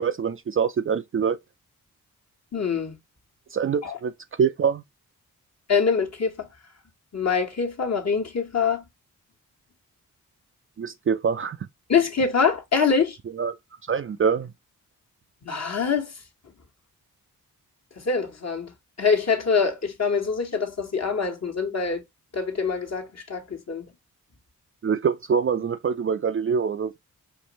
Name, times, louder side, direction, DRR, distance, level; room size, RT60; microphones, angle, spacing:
voice 1, 0.0-1.4 3.5-4.1 4.4-4.8 10.8-11.6 13.3-13.6 13.9-14.5 24.8-27.0, right 6 dB, 35° right, 0.4 m, -24 dB
voice 2, 2.5-3.0 3.8-4.0 5.7-6.5 7.1-8.8 11.9-13.2 15.4-16.1 18.0-18.7 19.0-22.0 22.3-23.9, left 5 dB, 45° left, 1.3 m, -24 dB
4.5 x 2.6 x 3.0 m
supercardioid pair, 45°, 36 cm